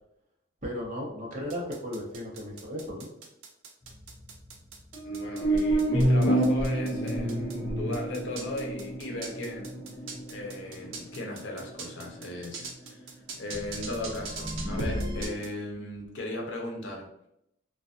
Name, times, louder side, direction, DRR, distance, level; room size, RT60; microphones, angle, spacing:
voice 1, 0.6-3.1, equal, 40° right, -3 dB, 0.7 m, -35 dB
sound 1, 1.5-7.6 7.9-15.5, right 3 dB, 85° right, 0.5 m, -39 dB
sound 2, 3.9-4.3 4.9-12.2 12.5-12.6 12.9-13.0 13.5-15.3, right 1 dB, 20° left, 0.4 m, -29 dB
voice 2, 5.0-9.9 10.3-13.0 13.4-17.1, left 1 dB, 75° left, 0 dB, 0.7 m, -37 dB
2.5 x 2.3 x 2.3 m, 0.78 s
head